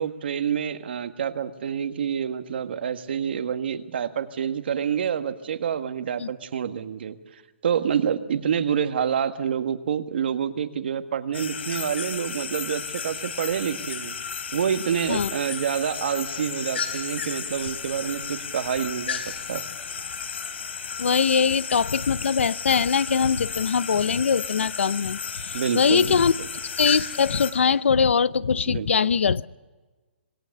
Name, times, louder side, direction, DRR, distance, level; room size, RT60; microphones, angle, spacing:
voice 1, 0.0-14.1 14.5-19.6 25.5-26.2 28.7-28.9, right 8 dB, 60° right, 9 dB, 1.7 m, -27 dB
sound 1, 11.3-27.5, left 6 dB, 70° left, 3.7 m, -33 dB
voice 2, 21.0-26.3 26.8-29.5, left 6 dB, 90° left, 20 dB, 0.7 m, -22 dB
26.5 x 18.5 x 6.7 m, 1.3 s
hypercardioid pair, 165°, 6 cm